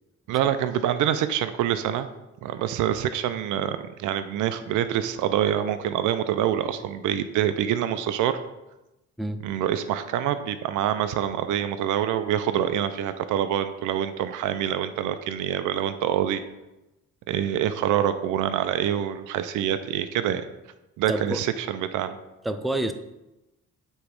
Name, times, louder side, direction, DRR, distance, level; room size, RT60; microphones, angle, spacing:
voice 1, 0.3-2.1 2.4-8.4 9.4-16.4 17.3-20.5 21.0-22.2, right 10 dB, 85° right, 11 dB, 0.5 m, -26 dB
voice 2, 21.1-21.4 22.4-22.9, right 1 dB, ahead, 9 dB, 0.4 m, -27 dB
8.1 x 3.1 x 5.1 m, 0.97 s
cardioid pair, 90°, 30 cm